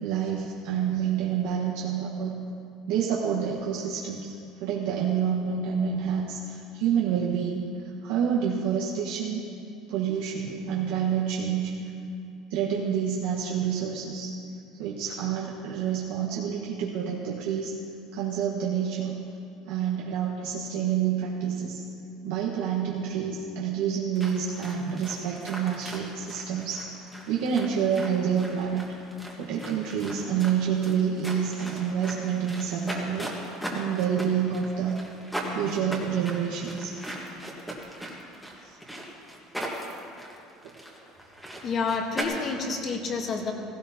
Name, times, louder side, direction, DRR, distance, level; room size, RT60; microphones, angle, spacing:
voice 1, 0.0-2.3 2.9-4.3 4.6-7.7 8.0-9.4 9.9-11.7 12.5-14.3 14.8-17.7 18.1-19.2 19.7-21.8 22.2-27.0 27.3-28.8 29.4-33.3 33.7-35.0 35.5-36.9 38.6-38.8, right 8 dB, 80° right, -4 dB, 1.4 m, -28 dB
sound 1, 24.1-42.2, right 1 dB, ahead, 1.5 m, -39 dB
voice 2, 41.6-43.5, left 4 dB, 30° left, 3 dB, 1.4 m, -29 dB
16.5 x 16.5 x 2.9 m, 2.5 s
cardioid pair, 165°, 0 cm